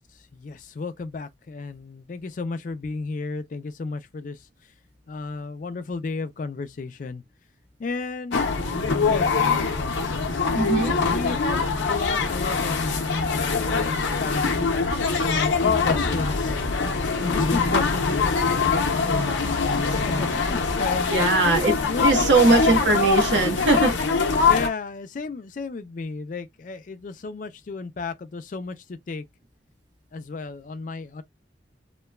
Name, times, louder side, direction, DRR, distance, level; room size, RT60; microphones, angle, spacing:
voice 1, 0.3-4.5 5.1-7.2 7.8-8.5 9.1-9.5 10.5-14.5 14.9-16.6 17.2-19.6 19.9-22.3 24.5-29.2 30.1-31.2, left 4 dB, 45° left, 0.3 m, -33 dB
sound 1, 8.3-24.7, left 4 dB, 90° left, 0.6 m, -23 dB
voice 2, 10.5-10.9 21.1-23.9, right 3 dB, 75° right, 0.9 m, -20 dB
2.9 x 2.2 x 2.2 m
head